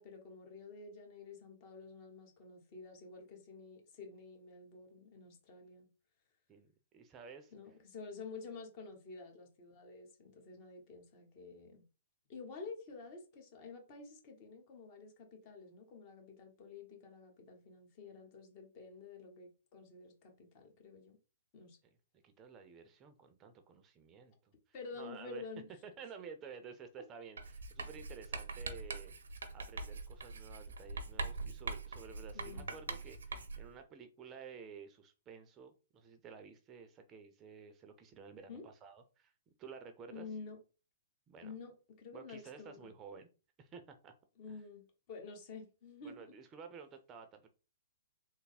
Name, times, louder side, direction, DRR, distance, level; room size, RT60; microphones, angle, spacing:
voice 1, 0.0-5.9 7.5-11.8 12.3-21.2 21.5-21.8 24.7-25.7 32.3-32.6 38.5-38.7 40.1-40.6 41.4-42.9 44.4-46.2, left 4 dB, 40° left, 1.1 m, -50 dB
voice 2, 6.9-7.5 21.8-22.0 22.2-24.5 24.9-25.5 25.8-29.1 29.5-39.3 39.6-40.3 41.3-41.6 42.1-43.3 43.6-44.1 44.5-44.6 46.0-47.5, right 6 dB, 25° right, 0.5 m, -52 dB
Writing, 27.4-33.8, right 3 dB, 85° right, 0.6 m, -43 dB
3.3 x 2.0 x 4.0 m
hypercardioid pair, 130°, 0 cm